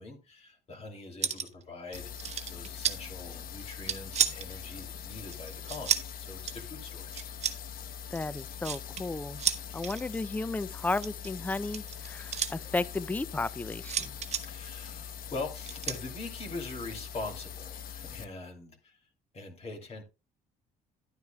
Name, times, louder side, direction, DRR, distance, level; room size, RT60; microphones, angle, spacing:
voice 1, 0.0-7.2 14.4-19.0 19.3-20.0, left 3 dB, 40° left, 2.8 m, -43 dB
sound 1, 1.2-1.6 1.9-3.0 3.6-4.5 5.3-6.1 6.5-6.6 7.1-7.6 8.1-9.0 9.4-10.0 10.9-12.5 13.8-14.4 15.7-16.0, right 7 dB, 40° right, 1.0 m, -31 dB
sound 2, 1.9-18.2, left 8 dB, 60° left, 0.9 m, -43 dB
voice 2, 8.1-9.4 9.7-14.2, left 3 dB, 10° left, 0.4 m, -34 dB
11.5 x 9.4 x 2.3 m
cardioid pair, 110°, 17 cm